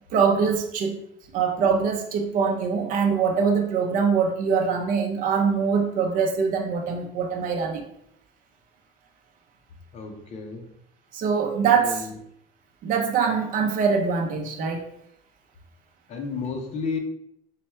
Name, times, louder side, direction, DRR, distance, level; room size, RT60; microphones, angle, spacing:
voice 1, 0.1-1.0 1.3-7.8 11.1-12.0 12.8-14.8, right 6 dB, 50° right, 2 dB, 0.6 m, -23 dB
voice 2, 9.9-10.7 11.7-12.2 16.1-17.0, left 4 dB, 40° left, 2 dB, 0.8 m, -32 dB
4.3 x 2.4 x 4.3 m, 0.74 s
cardioid pair, 135°, 17 cm